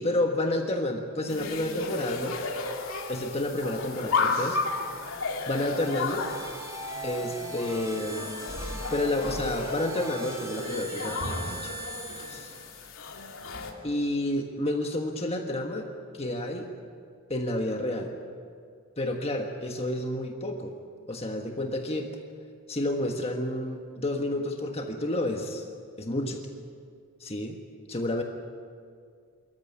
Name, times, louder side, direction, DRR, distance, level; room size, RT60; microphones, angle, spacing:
voice 1, 0.0-2.4 3.1-4.6 5.5-6.2 7.0-8.3 8.9-11.7 12.3-12.5 13.8-15.9 16.1-16.7 17.3-18.1 19.0-20.7 21.1-22.1 22.7-25.6 26.0-26.4 27.2-27.5 27.9-28.2, left 1 dB, 30° left, 3 dB, 1.5 m, -30 dB
sound 1, 1.3-13.7, left 3 dB, 80° left, 2.6 m, -33 dB
sound 2, 5.3-13.0, right 1 dB, 15° right, 3.9 m, -40 dB
24.5 x 14.5 x 9.7 m, 2.1 s
head